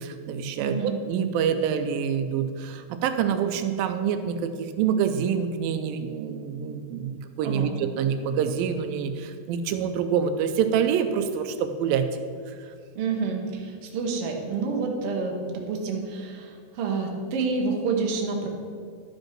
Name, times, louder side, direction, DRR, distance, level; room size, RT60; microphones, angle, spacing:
voice 1, 0.0-12.1 12.5-12.7, right 7 dB, 85° right, 8 dB, 2.3 m, -26 dB
voice 2, 0.5-0.9 7.4-7.7 12.9-18.5, right 4 dB, 60° right, 1 dB, 1.6 m, -28 dB
12.0 x 5.3 x 5.9 m, 2.1 s
omnidirectional pair, 4.1 m